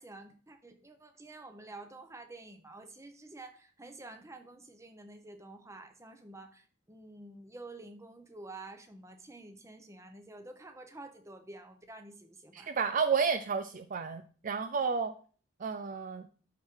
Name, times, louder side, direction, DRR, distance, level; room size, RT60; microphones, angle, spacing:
voice 1, 0.0-12.7, right 2 dB, 15° right, 6 dB, 0.9 m, -49 dB
voice 2, 12.5-15.1 15.6-16.2, right 5 dB, 40° right, 9 dB, 0.4 m, -31 dB
12.0 x 4.4 x 3.8 m, 0.42 s
head